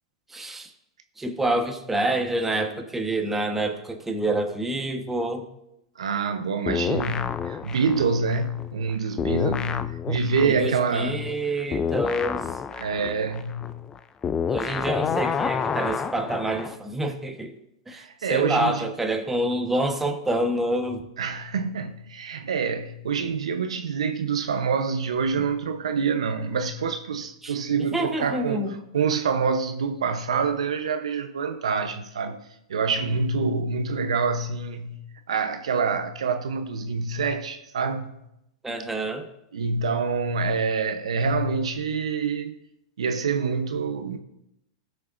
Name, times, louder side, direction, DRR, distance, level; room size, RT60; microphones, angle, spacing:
voice 1, 0.3-0.7 1.2-5.4 10.4-12.4 14.5-17.5 17.9-21.0 27.4-27.5 27.9-28.7 38.6-39.3, right 1 dB, 10° right, 1.2 m, -27 dB
voice 2, 6.0-11.3 12.7-13.8 17.9-18.9 21.2-32.4 32.7-35.0 35.3-38.1 39.5-42.6 43.0-44.2, right 5 dB, 80° right, 0.8 m, -26 dB
sound 1, 6.7-8.9 9.2-16.8, left 7 dB, 20° left, 0.4 m, -29 dB
17.5 x 6.4 x 2.6 m
hypercardioid pair, 110°, 3 cm